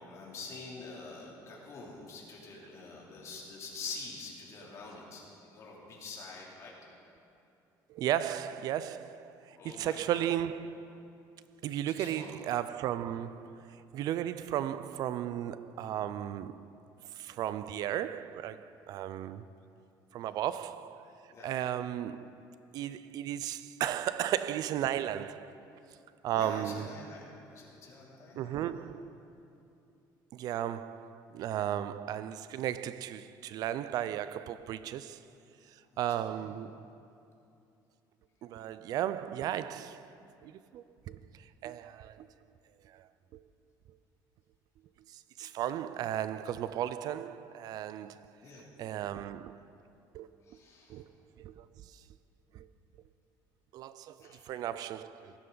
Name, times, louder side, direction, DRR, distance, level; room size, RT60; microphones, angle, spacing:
voice 1, 0.0-6.8 9.6-10.3 11.9-12.3 21.3-21.5 26.3-28.9 36.1-36.3 48.4-48.7 50.4-51.0 54.2-54.6, left 3 dB, 40° left, 3.0 m, -46 dB
voice 2, 7.9-11.0 11.6-16.7 17.1-19.5 20.1-21.1 21.4-22.3 22.7-25.6 26.2-27.0 28.4-29.2 30.3-35.2 36.0-36.8 38.4-40.1 40.4-42.3 42.9-43.4 45.1-48.3 48.8-49.6 50.1-50.3 50.9-51.1 51.4-51.7 51.9-52.0 52.5-52.7 53.7-55.3, right 11 dB, 55° right, 0.4 m, -35 dB
19.0 x 11.0 x 3.9 m
cardioid pair, 145°, 8 cm